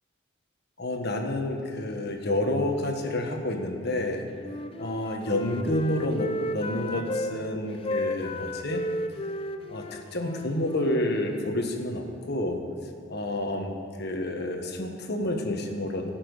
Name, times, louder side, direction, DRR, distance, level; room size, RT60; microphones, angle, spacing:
voice 1, 0.8-4.3 4.8-8.8 9.7-12.6 13.1-16.1, left 1 dB, 55° left, 4 dB, 1.3 m, -29 dB
Wind instrument woodwind instrument, 4.4-7.3 7.8-11.7, left 1 dB, 30° left, 0.5 m, -34 dB
16.5 x 6.0 x 6.5 m, 2.7 s
head